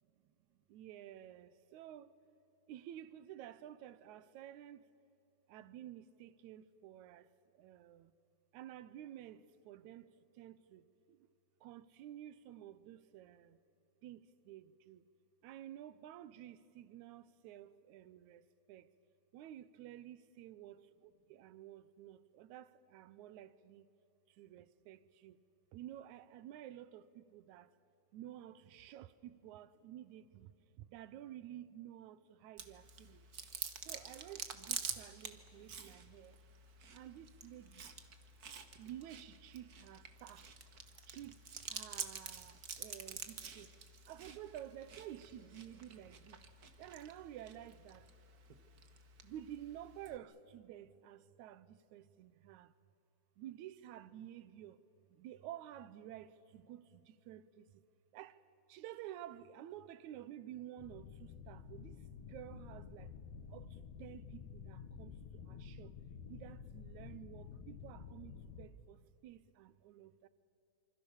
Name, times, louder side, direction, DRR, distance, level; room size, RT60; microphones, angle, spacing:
voice 1, 0.7-2.1 2.7-4.9 5.5-8.1 8.5-11.3 11.6-13.6 14.0-15.1 15.4-18.9 19.3-23.9 24.3-25.4 25.7-27.7 28.1-33.3 33.9-36.4 36.9-37.9 38.8-40.5 41.1-41.4 41.7-43.7 44.1-46.4 46.8-48.1 49.2-52.7 53.4-54.8 55.1-57.9 58.1-58.4 58.7-63.1 63.5-66.0 66.3-70.3, right 12 dB, 80° right, 2.2 m, -52 dB
Chewing mastication, 32.6-50.2, right 6 dB, 45° right, 1.3 m, -48 dB
sound 1, 60.8-68.7, left 6 dB, 75° left, 2.5 m, -51 dB
27.0 x 25.5 x 7.2 m
omnidirectional pair, 3.4 m